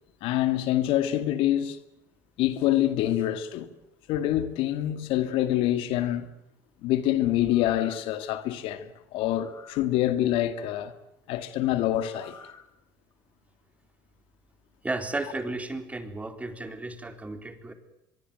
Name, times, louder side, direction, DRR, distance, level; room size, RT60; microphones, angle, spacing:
voice 1, 0.2-1.8 2.4-3.7 4.1-6.3 6.8-10.9 11.3-12.3, left 13 dB, 70° left, 2.2 m, -26 dB
sound 1, 7.4-8.2 9.2-9.9 12.0-12.6 13.1-13.2, left 6 dB, 35° left, 4.7 m, -50 dB
voice 2, 14.8-17.7, right 2 dB, 15° right, 4.0 m, -34 dB
24.0 x 23.0 x 9.3 m
supercardioid pair, 90°, 10 cm